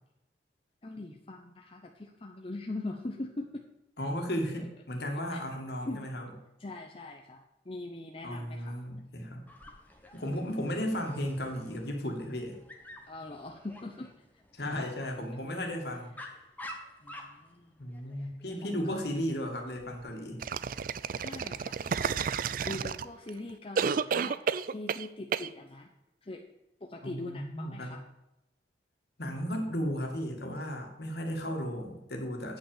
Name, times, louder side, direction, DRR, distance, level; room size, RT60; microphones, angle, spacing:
voice 1, 0.8-3.6 5.3-5.4 5.9-6.1 6.6-8.8 13.1-14.3 17.0-17.8 18.2-18.3 18.6-19.1 21.2-22.2 22.6-25.9 26.2-26.4 26.8-28.0, left 2 dB, 30° left, 2 dB, 0.7 m, -42 dB
voice 2, 4.0-6.3 8.2-9.4 10.1-12.6 14.5-16.2 17.8-20.4 27.0-28.0 29.2-32.6, equal, 60° left, 2 dB, 2.0 m, -35 dB
Dog, 9.5-20.0, left 1 dB, 10° left, 1.2 m, -51 dB
sound 1, 20.4-23.3 23.8-25.1 25.3-25.5, right 6 dB, 50° right, 0.4 m, -31 dB
8.8 x 5.9 x 7.1 m, 0.92 s
head